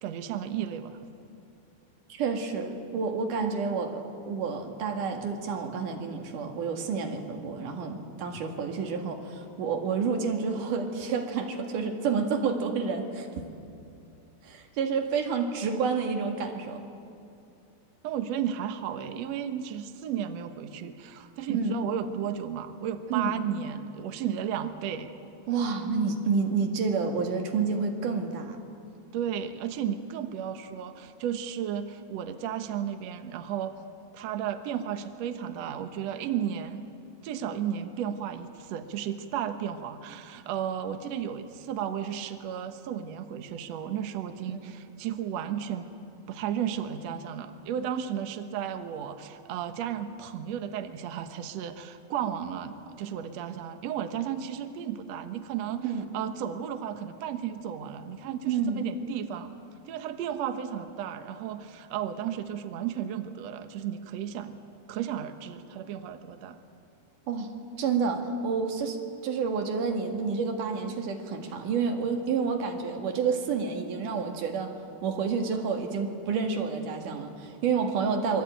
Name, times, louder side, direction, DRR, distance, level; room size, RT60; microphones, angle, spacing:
voice 1, 0.0-1.0 18.0-25.1 29.1-33.7 34.1-36.8 37.2-45.9 46.3-55.9 56.1-59.5 59.9-64.6 64.9-66.6, right 9 dB, 80° right, 8 dB, 1.5 m, -34 dB
voice 2, 2.1-13.3 14.4-16.8 21.5-21.8 23.1-23.4 25.5-28.6 44.5-44.6 55.8-56.1 58.5-58.9 67.3-67.5 67.8-69.0 69.2-74.7 75.0-78.4, right 5 dB, 60° right, 3 dB, 3.2 m, -29 dB
25.0 x 23.0 x 9.2 m, 2.6 s
omnidirectional pair, 4.7 m